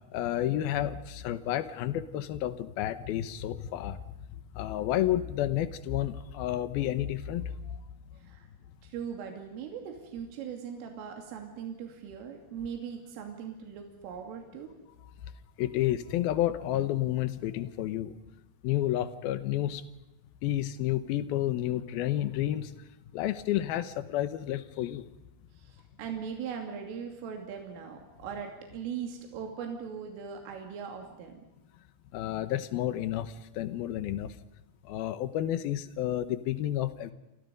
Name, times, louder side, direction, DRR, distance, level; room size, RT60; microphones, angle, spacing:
voice 1, 0.1-4.0 4.5-7.8 15.6-18.2 18.6-19.8 20.4-22.7 23.1-25.1 32.1-34.4 34.8-37.1, left 12 dB, 80° left, 13 dB, 2.2 m, -30 dB
voice 2, 8.8-14.7 25.5-31.4, right 7 dB, 80° right, 3 dB, 5.2 m, -40 dB
29.0 x 25.5 x 5.3 m, 0.95 s
omnidirectional pair, 5.7 m